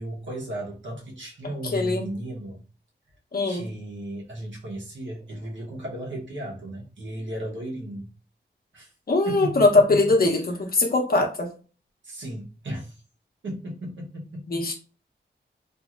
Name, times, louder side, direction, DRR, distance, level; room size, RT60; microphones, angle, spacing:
voice 1, 0.0-2.6 3.5-8.1 8.7-8.9 9.2-10.1 12.0-13.0 13.4-14.3, right 1 dB, 75° right, -2 dB, 1.0 m, -35 dB
voice 2, 1.6-2.1 3.3-3.7 9.1-11.5 14.5-14.7, left 2 dB, 50° left, 2 dB, 0.9 m, -21 dB
2.9 x 2.6 x 2.4 m, 0.36 s
wide cardioid pair, 70°, 19 cm